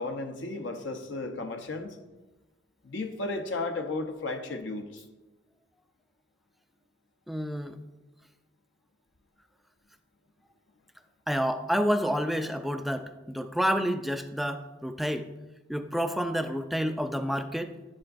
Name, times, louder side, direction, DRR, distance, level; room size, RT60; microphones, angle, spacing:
voice 1, 0.0-2.0 2.8-5.0, left 2 dB, 65° left, 5 dB, 0.8 m, -34 dB
voice 2, 7.3-7.8 11.3-15.3 15.7-17.7, equal, ahead, 8 dB, 0.4 m, -29 dB
10.5 x 7.5 x 2.5 m, 1.1 s
head